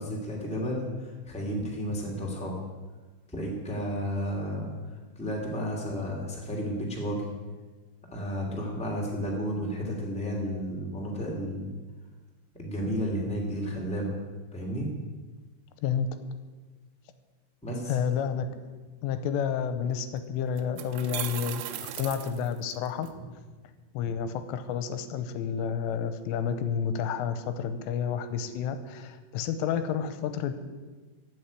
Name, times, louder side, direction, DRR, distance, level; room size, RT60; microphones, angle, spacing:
voice 1, 0.0-2.6 3.3-7.3 8.1-11.7 12.5-14.2 14.5-14.9 17.6-18.0, equal, 5° left, -3 dB, 0.7 m, -32 dB
voice 2, 17.9-18.5 19.0-23.1 23.9-30.5, left 7 dB, 90° left, 10 dB, 3.3 m, -30 dB
sound 1, 19.9-20.0 20.6-23.1, right 12 dB, 85° right, 3.2 m, -37 dB
14.0 x 6.4 x 9.6 m, 1.3 s
omnidirectional pair, 5.8 m